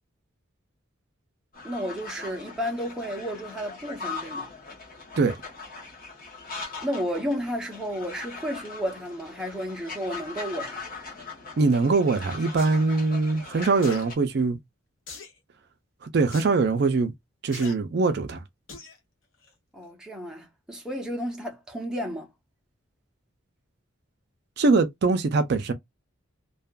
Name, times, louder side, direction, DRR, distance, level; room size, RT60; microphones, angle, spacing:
sound 1, 1.5-14.1, left 4 dB, 45° left, 1.2 m, -40 dB
voice 1, 1.6-4.5 6.8-10.8 19.7-22.3, equal, 5° right, 0.6 m, -32 dB
voice 2, 11.6-14.6 16.0-17.1 17.4-18.4 24.6-25.7, right 3 dB, 50° right, 0.4 m, -22 dB
sound 2, 12.6-12.8 13.8-14.1 15.1-15.4 16.3-16.5 17.5-17.7 18.7-19.0 19.4-19.5, left 4 dB, 70° left, 0.9 m, -41 dB
2.7 x 2.3 x 2.2 m
head